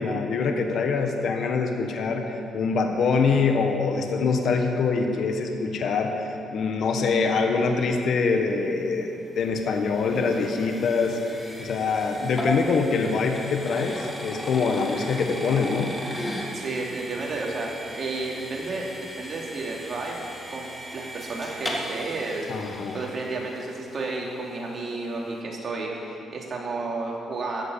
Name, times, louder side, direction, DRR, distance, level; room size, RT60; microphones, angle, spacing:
voice 1, 0.0-11.2 11.6-16.0 22.5-23.0, left 4 dB, 65° left, 4 dB, 1.4 m, -24 dB
sound 1, 8.9-24.1, equal, 15° left, 2.5 m, -37 dB
voice 2, 16.5-17.7 17.9-20.2 20.5-22.6 22.9-27.6, right 3 dB, 45° right, -2 dB, 3.0 m, -32 dB
14.5 x 8.2 x 8.1 m, 2.9 s
cardioid pair, 90°, 0 cm